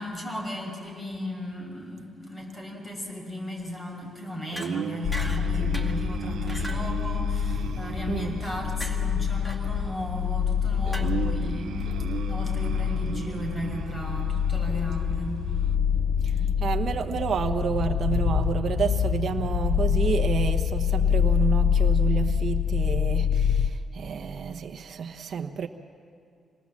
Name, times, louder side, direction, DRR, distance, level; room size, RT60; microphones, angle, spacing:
voice 1, 0.0-11.9 12.3-15.4, left 1 dB, 25° left, 1 dB, 5.8 m, -36 dB
sound 1, 4.5-4.7 5.1-6.0 6.5-6.9 8.8-9.0 9.4-9.6 10.9-11.0, right 1 dB, 10° left, 2.1 m, -38 dB
sound 2, 4.5-15.8, right 9 dB, 80° right, 0.7 m, -38 dB
sound 3, 5.0-23.7, left 8 dB, 45° left, 0.8 m, -26 dB
voice 2, 16.6-25.7, right 7 dB, 60° right, 5 dB, 1.1 m, -29 dB
26.0 x 19.5 x 7.4 m, 2.4 s
cardioid pair, 95°, 0 cm